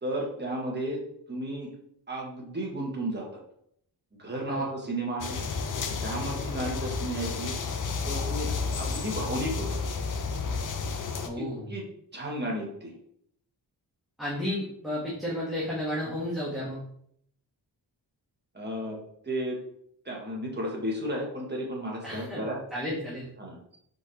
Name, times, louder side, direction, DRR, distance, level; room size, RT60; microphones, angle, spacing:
voice 1, 0.0-1.0 1.3-1.7 2.1-3.3 4.1-5.4 6.0-7.5 8.0-8.5 8.8-9.8 11.4-11.8 12.1-12.9 18.5-19.0 19.2-19.6 20.0-22.6 23.4-23.6, right 1 dB, 25° right, -2 dB, 1.4 m, -33 dB
sound 1, 5.2-11.3, left 4 dB, 50° left, 0.5 m, -31 dB
voice 2, 11.2-11.7 14.2-16.8 22.0-22.4 22.7-23.3, left 1 dB, ahead, -8 dB, 1.2 m, -32 dB
4.5 x 3.9 x 2.9 m, 0.69 s
wide cardioid pair, 100°, 42 cm